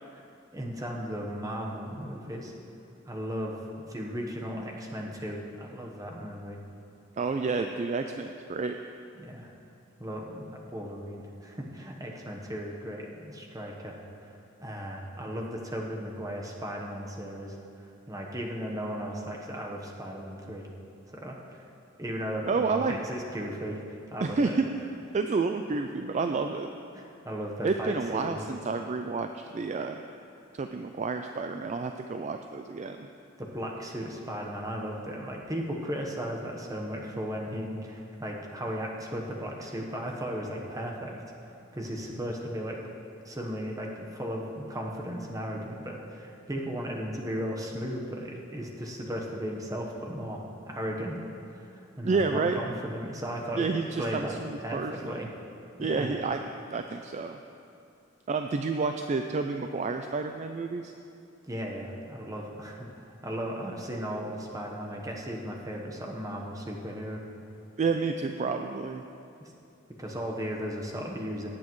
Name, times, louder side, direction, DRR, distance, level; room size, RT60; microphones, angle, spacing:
voice 1, 0.5-2.5 3.0-6.6 9.2-9.5 10.0-17.6 17.8-20.7 21.1-21.7 22.0-24.6 26.9-28.5 33.4-42.8 43.2-53.6 54.0-55.3 55.8-56.1 61.5-67.2 69.4-69.5 70.0-71.5, equal, 20° right, -1 dB, 1.1 m, -36 dB
voice 2, 7.2-8.8 22.5-23.0 24.2-24.6 25.1-26.7 27.6-30.0 30.5-33.1 52.0-52.6 53.5-55.2 55.8-56.4 56.7-57.4 58.3-60.9 67.8-69.0, right 4 dB, 35° right, 6 dB, 0.3 m, -30 dB
17.5 x 8.5 x 3.1 m, 2.6 s
head